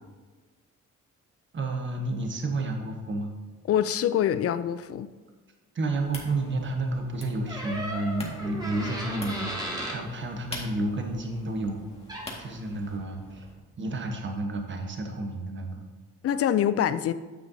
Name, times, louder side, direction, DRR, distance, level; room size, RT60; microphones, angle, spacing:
voice 1, 1.5-3.3 5.7-11.8 12.4-13.5 13.8-15.8, right 2 dB, 40° right, 3 dB, 1.2 m, -31 dB
voice 2, 3.7-5.1 16.2-17.1, left 10 dB, 50° left, 14 dB, 0.4 m, -25 dB
sound 1, 5.9-13.5, left 2 dB, 20° left, 1.8 m, -45 dB
Door, 7.5-10.0 11.8-11.9 12.1-12.5, equal, 15° right, 1.8 m, -35 dB
9.4 x 6.8 x 2.7 m, 1.3 s
cardioid pair, 90°, 30 cm